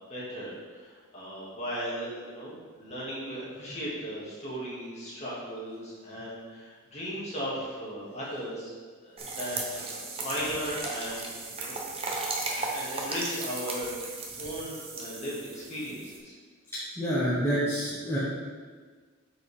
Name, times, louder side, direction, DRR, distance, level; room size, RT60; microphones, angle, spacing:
voice 1, 0.1-8.7 9.0-11.8 12.5-16.3, equal, 30° left, -7 dB, 2.0 m, -37 dB
sound 1, 9.2-16.2, right 3 dB, 25° right, 0.8 m, -36 dB
voice 2, 17.0-18.2, equal, 10° left, -10 dB, 1.2 m, -27 dB
8.0 x 4.8 x 3.5 m, 1.5 s
head